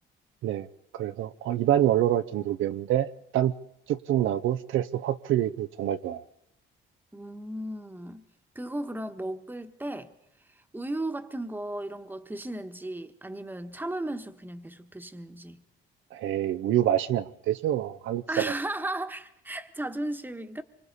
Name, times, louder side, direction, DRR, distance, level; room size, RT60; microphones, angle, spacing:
voice 1, 0.9-3.5 3.9-6.2 16.1-18.5, right 12 dB, 80° right, 0.7 m, -26 dB
voice 2, 7.1-8.3 8.5-10.1 10.5-15.6 18.3-20.6, right 1 dB, 10° right, 1.3 m, -35 dB
25.5 x 24.5 x 4.2 m
cardioid pair, 90°, 20 cm